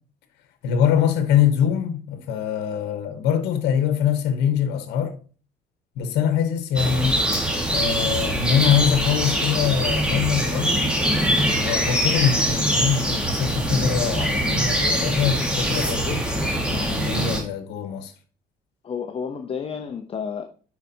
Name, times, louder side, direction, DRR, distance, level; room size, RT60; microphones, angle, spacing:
voice 1, 0.6-5.1 6.0-7.5 7.7-11.0 11.6-16.3 16.7-18.1, left 8 dB, 85° left, 0.9 m, -23 dB
sound 1, 6.8-17.4, equal, 5° right, 1.7 m, -23 dB
voice 2, 16.1-16.7 18.8-20.4, left 6 dB, 35° left, 0.7 m, -32 dB
9.7 x 4.6 x 2.8 m
cardioid pair, 110°, 17 cm